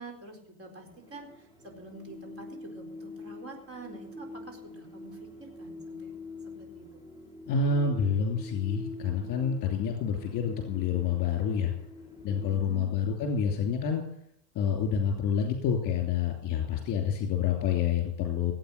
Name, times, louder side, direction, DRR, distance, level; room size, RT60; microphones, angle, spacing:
voice 1, 0.0-6.1 6.4-6.9 12.5-13.0, right 3 dB, 30° right, 2 dB, 4.2 m, -47 dB
sound 1, 0.8-12.6, left 2 dB, 10° right, 3.5 m, -45 dB
voice 2, 7.5-11.7 12.2-14.0 14.5-18.5, left 6 dB, 40° left, 3 dB, 2.9 m, -28 dB
18.0 x 8.7 x 6.6 m, 0.72 s
supercardioid pair, 130°, 48 cm